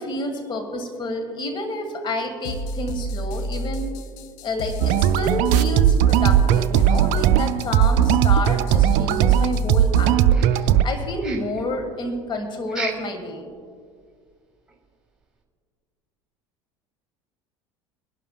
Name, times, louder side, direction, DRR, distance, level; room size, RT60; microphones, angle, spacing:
voice 1, 0.0-4.0 4.4-13.5, left 1 dB, 30° left, 5 dB, 1.6 m, -29 dB
sound 1, 2.4-10.1, equal, 55° left, 0.8 m, -30 dB
sound 2, 4.8-10.8, right 10 dB, 50° right, 0.4 m, -18 dB
sound 3, 10.3-10.9 11.2-11.7 12.7-13.2 13.5-13.6 14.1-14.2 14.7-14.8, right 3 dB, 5° right, 2.6 m, -34 dB
24.0 x 11.5 x 2.3 m, 2.1 s
figure-of-eight pair, 70°, 16 cm